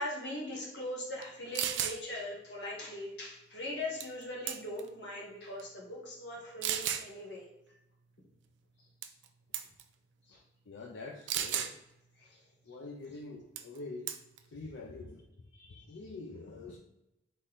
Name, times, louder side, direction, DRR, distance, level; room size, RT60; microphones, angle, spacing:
voice 1, 0.0-7.4 10.3-10.4 12.2-12.4 15.6-15.8, left 1 dB, 65° left, -3 dB, 1.3 m, -40 dB
sound 1, 1.2-1.3 1.5-2.0 4.0-4.2 4.5-4.9 5.6-5.7 6.6-7.1 9.0-9.3 9.5-9.8 11.3-11.7 13.6-13.8 14.1-14.4, right 10 dB, 80° right, 0.4 m, -33 dB
voice 2, 10.7-11.8 12.6-14.2 14.5-15.3 15.7-16.8, left 3 dB, 90° left, 0 dB, 0.5 m, -45 dB
3.9 x 3.1 x 3.9 m, 0.90 s
head